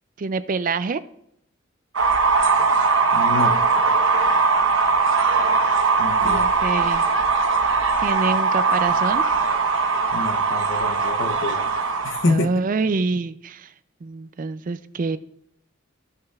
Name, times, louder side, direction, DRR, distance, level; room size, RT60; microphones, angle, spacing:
voice 1, 0.2-1.0 6.2-7.0 8.0-9.3 12.3-13.7 14.0-15.2, right 4 dB, 40° right, 13 dB, 0.4 m, -26 dB
sound 1, 2.0-12.3, right 4 dB, 70° right, 1.0 m, -20 dB
voice 2, 3.1-3.6 6.0-6.6 10.1-11.7 12.0-12.5, left 2 dB, 65° left, 6 dB, 0.8 m, -26 dB
14.0 x 6.4 x 2.3 m, 0.74 s
head